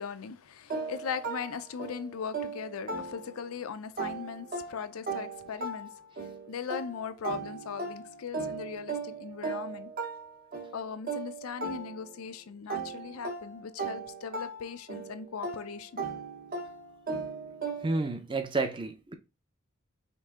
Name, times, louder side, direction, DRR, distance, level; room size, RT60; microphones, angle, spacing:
voice 1, 0.0-5.9 6.5-9.9 10.7-16.0, left 6 dB, 90° left, 0.5 m, -39 dB
sound 1, 0.7-3.6 4.0-12.3 12.7-18.1, right 4 dB, 45° right, 0.9 m, -38 dB
voice 2, 17.8-19.1, right 3 dB, 25° right, 0.6 m, -30 dB
5.3 x 2.6 x 3.6 m
head